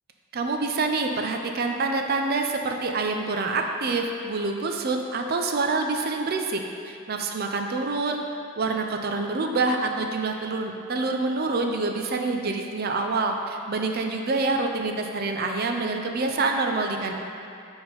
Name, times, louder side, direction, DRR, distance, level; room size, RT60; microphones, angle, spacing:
voice 1, 0.3-6.6 6.9-8.2 8.6-17.1, right 3 dB, 45° right, 3 dB, 0.4 m, -26 dB
7.4 x 4.3 x 3.8 m, 2.5 s
head